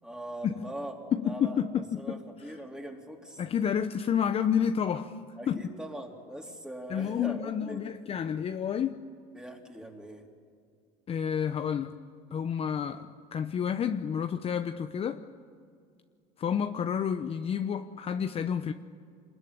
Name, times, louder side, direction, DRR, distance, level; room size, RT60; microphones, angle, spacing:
voice 1, 0.0-1.0 1.2-3.4 5.4-7.8 9.3-10.2, right 1 dB, 5° right, 1 dB, 3.6 m, -41 dB
voice 2, 1.1-2.2 3.4-5.2 5.5-5.6 6.9-9.0 11.1-12.0 12.3-15.2 16.4-18.7, left 8 dB, 35° left, 7 dB, 0.9 m, -30 dB
26.5 x 21.0 x 9.7 m, 2.2 s
cardioid pair, 120°, 17 cm